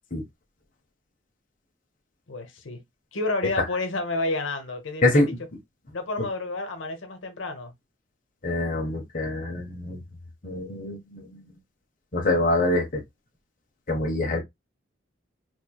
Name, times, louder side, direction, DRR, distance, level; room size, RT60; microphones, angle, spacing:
voice 1, 2.3-2.8 3.1-5.2 5.9-7.7, left 2 dB, 85° left, 1.0 m, -30 dB
voice 2, 8.4-10.0 10.4-11.5 12.1-13.0 13.9-14.4, left 2 dB, 45° left, 0.9 m, -25 dB
4.3 x 3.2 x 2.3 m
head